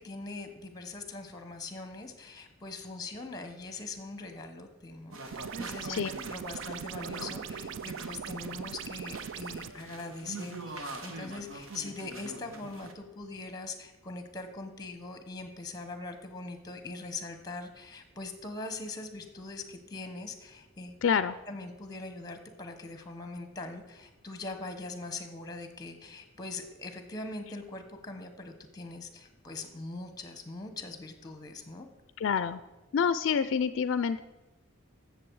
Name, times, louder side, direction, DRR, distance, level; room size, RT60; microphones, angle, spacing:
voice 1, 0.0-20.9 21.5-31.9, left 3 dB, 20° left, 7 dB, 1.1 m, -42 dB
sound 1, 5.1-12.9, right 2 dB, 85° right, 1.2 m, -44 dB
sound 2, 5.3-9.7, right 7 dB, 65° right, 0.3 m, -40 dB
voice 2, 21.0-21.4 32.2-32.6 32.9-34.2, left 6 dB, 65° left, 14 dB, 0.4 m, -27 dB
14.5 x 6.9 x 4.7 m, 1.1 s
head